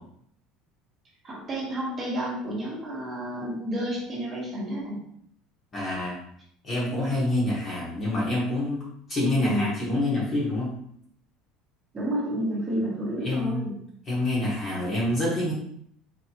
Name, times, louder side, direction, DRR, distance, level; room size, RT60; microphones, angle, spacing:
voice 1, 1.2-5.1 9.4-9.7 11.9-13.8, right 1 dB, 20° right, -5 dB, 1.2 m, -30 dB
voice 2, 5.7-6.2 6.6-10.7 13.2-13.6 14.1-15.5, left 1 dB, 25° left, -7 dB, 1.1 m, -27 dB
4.4 x 3.0 x 2.9 m, 0.68 s
cardioid pair, 175°, 0 cm